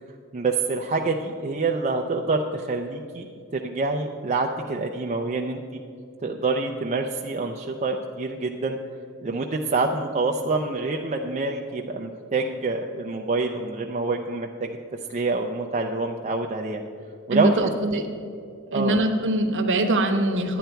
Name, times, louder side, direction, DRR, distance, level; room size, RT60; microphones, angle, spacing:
voice 1, 0.3-3.3 3.5-5.8 6.2-8.8 9.2-14.8 15.1-16.8 17.3-17.7 18.7-19.0, right 3 dB, 30° right, 1 dB, 0.5 m, -26 dB
voice 2, 17.3-18.0 18.7-20.6, right 2 dB, 55° right, 5 dB, 1.0 m, -23 dB
10.5 x 9.3 x 4.5 m, 2.5 s
head